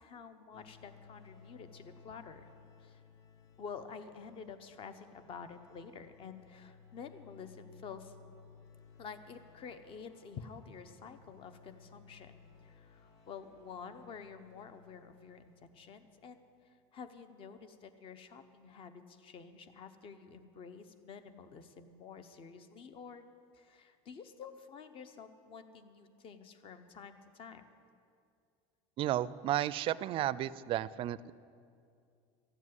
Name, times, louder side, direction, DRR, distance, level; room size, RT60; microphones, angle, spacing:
voice 1, 0.0-2.5 2.8-3.0 3.6-8.1 9.0-23.2 23.5-27.7, left 6 dB, 40° left, 10 dB, 1.0 m, -49 dB
sound 1, 0.5-16.4, left 5 dB, 75° left, 1.5 m, -60 dB
voice 2, 29.0-31.3, right 13 dB, 40° right, 18 dB, 0.4 m, -33 dB
14.0 x 7.3 x 9.7 m, 2.3 s
supercardioid pair, 135°, 14 cm